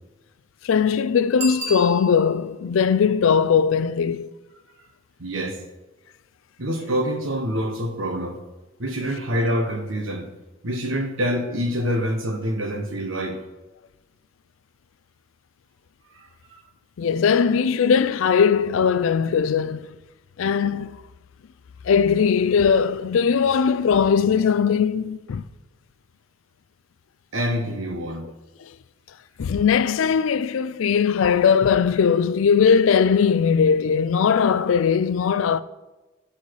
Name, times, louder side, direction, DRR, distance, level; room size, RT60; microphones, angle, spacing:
voice 1, 0.6-4.3 17.0-19.9 20.4-20.9 21.9-25.4 29.4-35.6, left 6 dB, 80° left, 0.4 m, -19 dB
Bicycle bell, 1.4-2.5 8.0-8.1, equal, 35° right, 1.4 m, -32 dB
voice 2, 5.2-5.6 6.6-8.4 8.8-10.3 10.6-13.4 16.1-16.3 27.3-28.3, equal, 80° right, 1.2 m, -26 dB
11.5 x 4.2 x 4.7 m
head